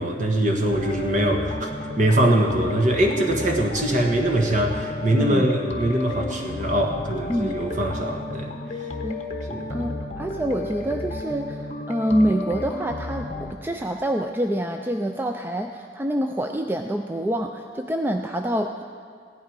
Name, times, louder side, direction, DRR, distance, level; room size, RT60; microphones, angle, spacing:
voice 1, 0.0-1.7 2.0-8.5 9.5-9.9, right 1 dB, 45° right, 2 dB, 1.6 m, -22 dB
sound 1, 0.7-13.5, left 2 dB, 40° left, 1.1 m, -33 dB
voice 2, 9.7-18.8, right 1 dB, 10° right, 5 dB, 0.4 m, -26 dB
16.5 x 11.0 x 5.1 m, 2.2 s
head